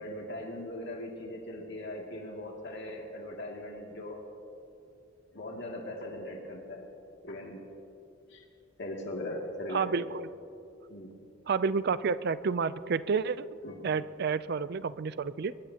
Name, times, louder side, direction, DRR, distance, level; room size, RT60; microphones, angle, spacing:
voice 1, 0.0-4.2 5.3-6.9 7.2-7.6 8.3-8.4 8.8-10.1 10.9-11.2 13.6-13.9, left 1 dB, 60° left, 0 dB, 2.4 m, -39 dB
voice 2, 9.7-10.3 11.5-13.5 13.8-15.5, right 5 dB, 55° right, 16 dB, 0.4 m, -30 dB
22.0 x 21.5 x 2.9 m, 2.7 s
head